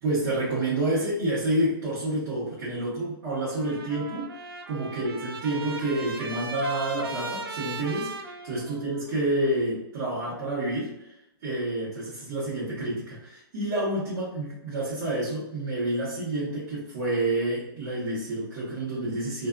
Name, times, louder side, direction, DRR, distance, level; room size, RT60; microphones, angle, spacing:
voice 1, 0.0-4.3 4.7-11.1 11.4-19.5, right 1 dB, 40° right, -10 dB, 1.2 m, -29 dB
Trumpet, 3.5-9.1, right 4 dB, 65° right, 0.5 m, -38 dB
2.6 x 2.4 x 2.4 m, 0.87 s
hypercardioid pair, 160°, 13 cm